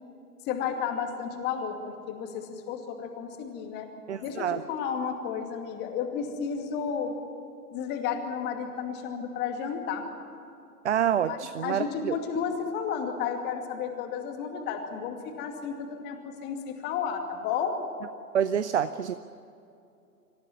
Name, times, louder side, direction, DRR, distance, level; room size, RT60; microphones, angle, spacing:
voice 1, 0.4-1.8 2.1-3.9 4.2-7.1 7.7-10.0 11.3-17.8, left 7 dB, 20° left, 4 dB, 2.4 m, -32 dB
voice 2, 4.1-4.6 10.8-12.1 18.3-19.1, right 9 dB, 45° right, 13 dB, 0.7 m, -27 dB
26.0 x 15.0 x 9.4 m, 2.6 s
figure-of-eight pair, 120°, 46 cm